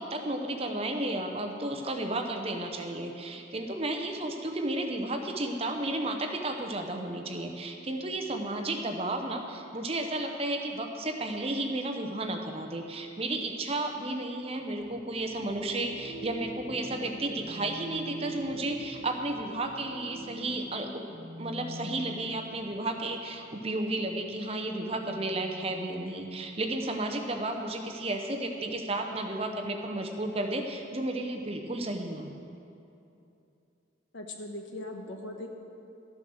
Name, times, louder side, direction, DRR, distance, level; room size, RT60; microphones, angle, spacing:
voice 1, 0.0-21.0 21.4-32.4, right 2 dB, 30° right, 4 dB, 0.8 m, -33 dB
sound 1, 14.8-27.1 27.5-30.5, right 1 dB, 50° right, 1.8 m, -45 dB
voice 2, 34.1-35.5, left 1 dB, 70° left, 3 dB, 1.2 m, -39 dB
13.0 x 7.3 x 6.4 m, 2.7 s
head